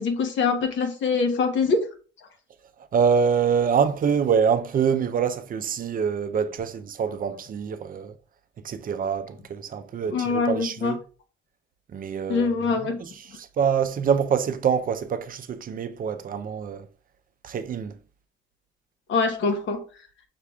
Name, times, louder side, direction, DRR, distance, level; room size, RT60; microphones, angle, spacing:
voice 1, 0.0-1.8 10.1-10.9 12.3-13.0 19.1-19.8, left 4 dB, 70° left, 1.0 m, -24 dB
voice 2, 2.9-8.1 8.6-11.0 11.9-16.9 17.4-17.9, right 7 dB, 45° right, 0.4 m, -25 dB
5.7 x 3.4 x 2.3 m
cardioid pair, 90°, 20 cm